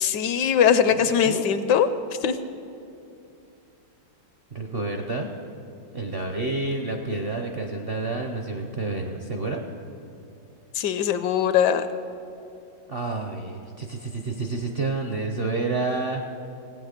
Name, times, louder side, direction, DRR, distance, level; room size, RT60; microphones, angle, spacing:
voice 1, 0.0-1.9 2.2-2.4 10.7-11.9, left 8 dB, 75° left, 11 dB, 1.1 m, -21 dB
voice 2, 0.9-1.5 4.5-5.3 5.9-9.6 12.9-16.2, right 3 dB, 50° right, 3 dB, 0.7 m, -29 dB
16.5 x 8.6 x 6.5 m, 2.7 s
omnidirectional pair, 2.0 m